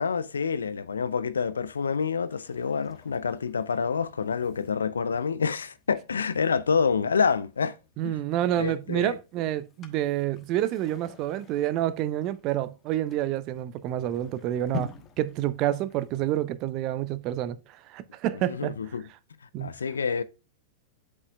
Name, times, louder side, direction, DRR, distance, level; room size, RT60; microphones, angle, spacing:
voice 1, 0.0-7.7 8.0-8.1 8.6-9.1 18.5-19.0 19.6-20.2, left 6 dB, 80° left, 0.5 m, -27 dB
sound 1, 2.3-16.6, left 5 dB, 30° left, 1.2 m, -48 dB
voice 2, 8.0-14.9 15.2-17.6 17.9-18.8 19.5-19.7, right 13 dB, 45° right, 0.6 m, -28 dB
8.1 x 5.5 x 2.3 m
figure-of-eight pair, 100°, 0 cm